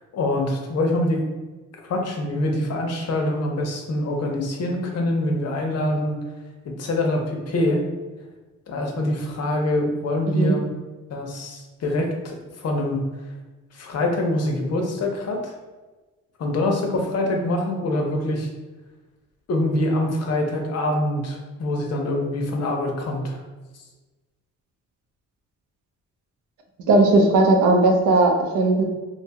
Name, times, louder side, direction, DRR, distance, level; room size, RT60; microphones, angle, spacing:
voice 1, 0.1-1.2 1.8-6.2 6.6-7.9 8.7-10.7 11.1-13.0 13.7-15.5 16.4-18.5 19.5-23.4, left 1 dB, 55° left, 2 dB, 0.6 m, -24 dB
voice 2, 10.3-10.6 26.9-28.8, right 2 dB, 80° right, 2 dB, 0.6 m, -17 dB
2.7 x 2.3 x 2.8 m, 1.2 s
cardioid pair, 90°, 30 cm